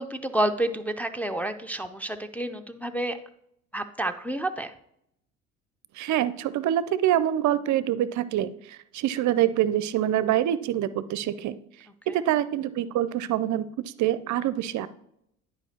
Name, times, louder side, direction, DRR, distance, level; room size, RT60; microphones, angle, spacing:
voice 1, 0.0-3.2 3.7-4.7, right 1 dB, 5° left, 6 dB, 0.5 m, -29 dB
voice 2, 5.9-11.6 12.1-14.9, right 12 dB, 50° right, 16 dB, 0.5 m, -25 dB
11.5 x 5.1 x 2.8 m, 0.74 s
hypercardioid pair, 65°, 39 cm